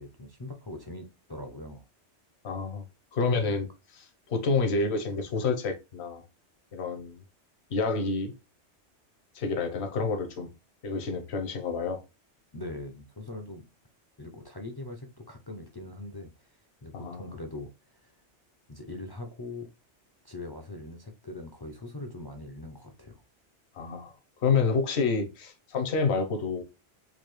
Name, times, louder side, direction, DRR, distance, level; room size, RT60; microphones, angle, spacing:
voice 1, 0.0-1.8 12.5-13.7 14.2-18.1 18.7-19.7 20.2-23.2, left 2 dB, 40° left, 0.3 m, -42 dB
voice 2, 2.4-2.8 3.1-3.7 4.0-6.2 6.7-7.2 7.7-8.3 9.3-10.5 10.8-12.0 16.9-17.3 23.8-24.1 24.4-26.6, left 4 dB, 70° left, 1.1 m, -28 dB
4.0 x 2.7 x 3.1 m
omnidirectional pair, 1.2 m